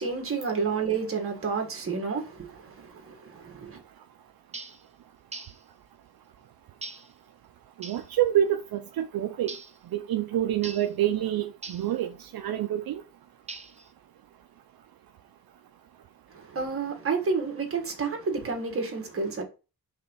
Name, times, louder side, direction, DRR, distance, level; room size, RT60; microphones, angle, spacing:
voice 1, 0.0-2.5 3.2-3.8 16.5-19.4, right 5 dB, 35° right, 1.6 m, -29 dB
sound 1, 4.5-4.8 5.3-5.6 6.8-7.1 7.8-8.1 9.5-9.8 10.6-10.9 11.6-11.9 13.5-13.9, right 4 dB, 20° right, 0.7 m, -41 dB
voice 2, 7.8-9.5 9.9-13.0, right 11 dB, 70° right, 0.6 m, -27 dB
5.4 x 3.6 x 5.5 m
wide cardioid pair, 160°, 37 cm